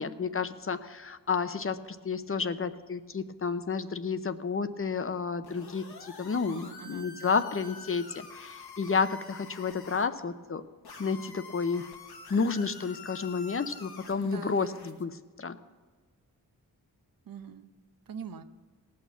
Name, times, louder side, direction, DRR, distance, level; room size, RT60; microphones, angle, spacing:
voice 1, 0.0-10.7 11.0-11.8 12.3-15.6, left 5 dB, 35° left, 11 dB, 0.7 m, -31 dB
sound 1, 5.4-10.1 10.8-15.0, left 4 dB, 75° left, 1.3 m, -47 dB
voice 2, 6.5-7.1 14.2-14.7 17.3-17.7 18.1-18.4, right 7 dB, 60° right, 10 dB, 0.8 m, -43 dB
18.0 x 6.4 x 6.9 m, 1.4 s
cardioid pair, 55°, 38 cm